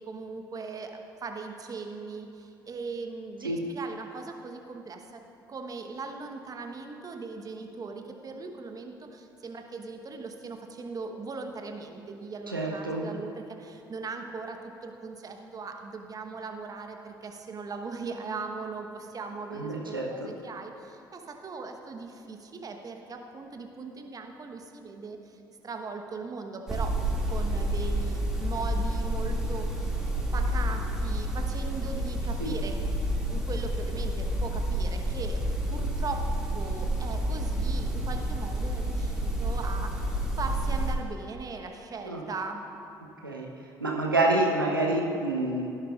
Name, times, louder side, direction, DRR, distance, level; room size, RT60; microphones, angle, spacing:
voice 1, 0.0-5.2 5.5-26.9 27.3-30.0 30.3-32.8 33.3-35.4 35.7-36.2 36.5-42.7, right 4 dB, 35° right, 4 dB, 1.1 m, -39 dB
voice 2, 12.5-13.1 19.5-20.3 32.4-32.5 42.0-42.2 43.2-43.5 43.8-45.7, right 2 dB, 90° right, -1 dB, 1.0 m, -27 dB
sound 1, 26.7-40.9, right 1 dB, 5° right, 2.3 m, -29 dB
17.0 x 11.0 x 2.5 m, 2.8 s
figure-of-eight pair, 50°, 11 cm